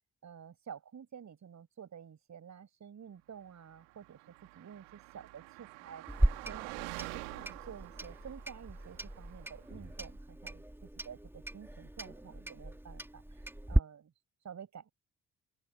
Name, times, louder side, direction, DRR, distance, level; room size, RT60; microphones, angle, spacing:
voice 1, 0.2-4.2 4.5-6.0 6.4-14.1 14.4-14.9, right 8 dB, 50° right, 7.4 m, -50 dB
Car passing by, 3.8-9.7, right 29 dB, 75° right, 2.6 m, -47 dB
Clock, 6.1-13.8, right 1 dB, 5° right, 3.0 m, -36 dB
open air
hypercardioid pair, 45°, 37 cm